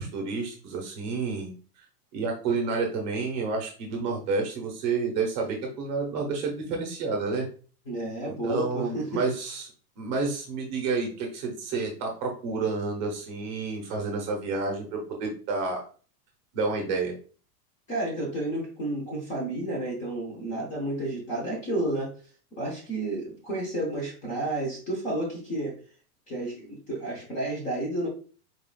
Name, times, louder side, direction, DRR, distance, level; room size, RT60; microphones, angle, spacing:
voice 1, 0.0-1.5 2.1-7.5 8.3-9.7 10.0-15.8 16.5-17.1, right 4 dB, 30° right, 1 dB, 0.8 m, -30 dB
voice 2, 7.9-9.2 17.9-22.1 22.6-25.7 26.3-28.1, right 1 dB, 15° left, -2 dB, 0.7 m, -31 dB
4.4 x 3.7 x 2.3 m, 0.38 s
supercardioid pair, 175°, 47 cm